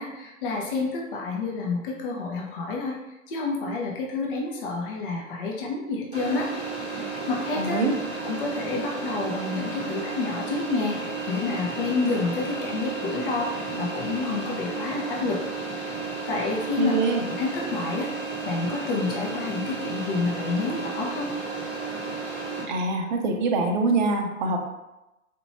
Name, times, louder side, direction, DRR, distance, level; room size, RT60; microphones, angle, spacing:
voice 1, 0.0-2.9 3.3-6.5 6.9-7.8 8.2-15.4 15.8-16.9 17.4-18.1 18.4-21.3, left 3 dB, 40° left, -2 dB, 0.8 m, -29 dB
sound 1, 6.1-22.6, right 4 dB, 15° right, 1.0 m, -33 dB
voice 2, 7.6-7.9 16.8-17.2 22.7-24.6, right 3 dB, 35° right, 3 dB, 0.6 m, -24 dB
4.3 x 2.6 x 3.0 m, 0.96 s
figure-of-eight pair, 115°, 42 cm